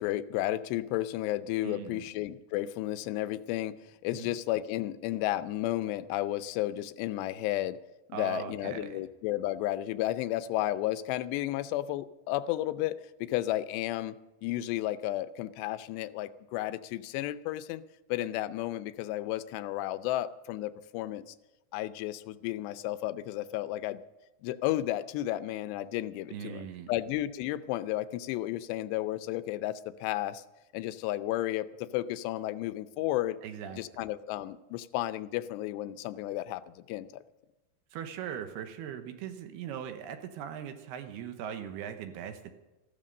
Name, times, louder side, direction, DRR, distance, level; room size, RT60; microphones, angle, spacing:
voice 1, 0.0-3.8 4.0-7.8 8.1-14.2 14.4-17.8 18.1-21.3 21.7-24.0 24.4-30.4 30.7-33.4 33.7-37.2, left 14 dB, 90° left, 13 dB, 2.8 m, -33 dB
voice 2, 1.6-2.1 4.1-4.4 8.1-9.0 26.3-26.9 33.4-33.8 37.9-42.5, right 8 dB, 80° right, 7 dB, 3.0 m, -40 dB
14.0 x 13.0 x 6.6 m, 1.0 s
omnidirectional pair, 4.8 m